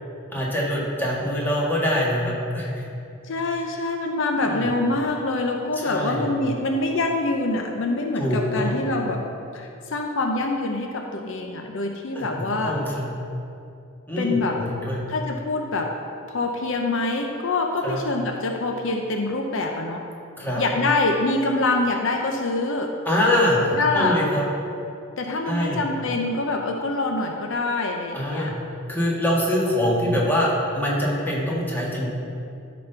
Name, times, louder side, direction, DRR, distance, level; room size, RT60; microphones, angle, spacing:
voice 1, 0.3-2.8 4.4-4.7 5.8-6.3 8.2-8.9 12.1-13.1 14.1-15.0 17.8-18.0 20.4-20.6 23.1-23.6 23.9-24.4 25.4-25.8 28.1-28.5 28.9-32.1, left 1 dB, 10° left, -5 dB, 1.8 m, -24 dB
voice 2, 3.2-9.2 9.5-12.8 14.2-14.6 15.1-15.9 16.3-20.0 20.6-22.9 23.7-24.2 25.2-28.5, left 2 dB, 70° left, 2 dB, 0.7 m, -25 dB
12.0 x 4.3 x 5.6 m, 2.6 s
head